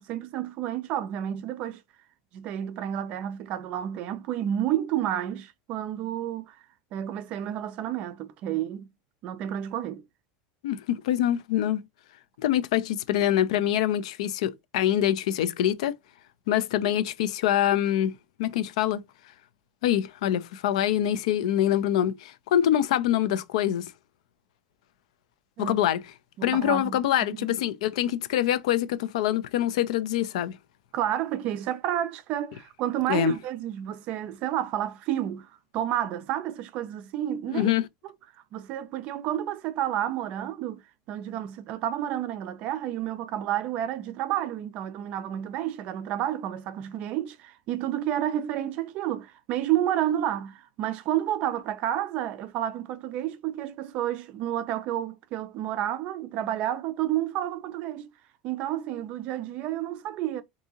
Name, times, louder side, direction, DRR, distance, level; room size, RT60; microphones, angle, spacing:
voice 1, 0.0-1.8 2.3-6.6 6.9-8.9 9.2-10.0 25.6-25.8 26.4-27.0 27.3-27.5 30.9-37.7 38.5-40.8 41.1-58.1 58.4-60.4, right 11 dB, 35° right, 0.4 m, -30 dB
voice 2, 10.6-11.8 12.4-16.0 16.5-18.1 18.4-19.0 19.8-23.9 25.6-26.0 26.4-30.6 33.1-33.3 37.5-37.9, left 11 dB, 85° left, 0.4 m, -25 dB
3.6 x 2.6 x 2.8 m
supercardioid pair, 175°, 4 cm